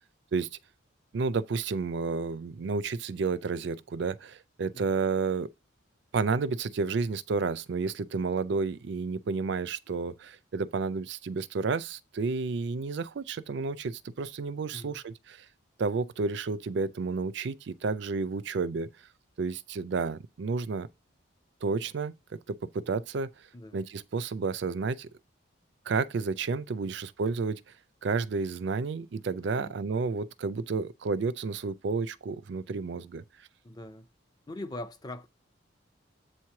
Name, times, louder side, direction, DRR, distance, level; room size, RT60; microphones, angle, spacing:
voice 1, 1.1-5.5 6.1-15.5 15.8-18.9 19.4-20.9 21.6-23.3 23.7-25.1 25.9-27.6 28.0-33.2, right 4 dB, 60° right, 0.4 m, -31 dB
voice 2, 29.4-29.7 33.6-34.1 34.5-35.3, left 1 dB, 20° left, 0.5 m, -42 dB
7.8 x 3.1 x 5.7 m
head